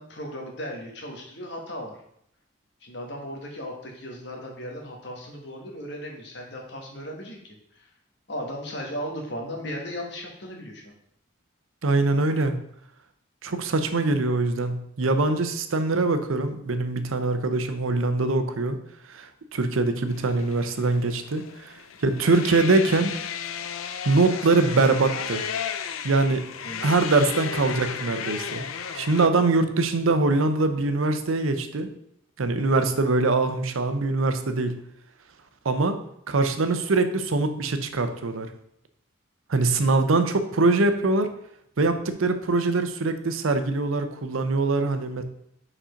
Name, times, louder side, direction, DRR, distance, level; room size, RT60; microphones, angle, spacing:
voice 1, 0.0-2.0 2.8-7.9 8.3-10.9 26.6-26.9, equal, 55° left, 1 dB, 1.4 m, -36 dB
voice 2, 11.8-12.6 13.4-18.8 19.1-23.2 24.0-25.5 26.0-26.4 26.8-28.7 28.9-31.9 32.4-34.8 35.6-36.0 36.3-38.5 39.5-41.3 41.8-45.2, right 3 dB, 85° right, 9 dB, 0.7 m, -23 dB
sound 1, 20.1-29.3, left 7 dB, 90° left, 0.5 m, -34 dB
5.0 x 4.3 x 5.1 m, 0.72 s
head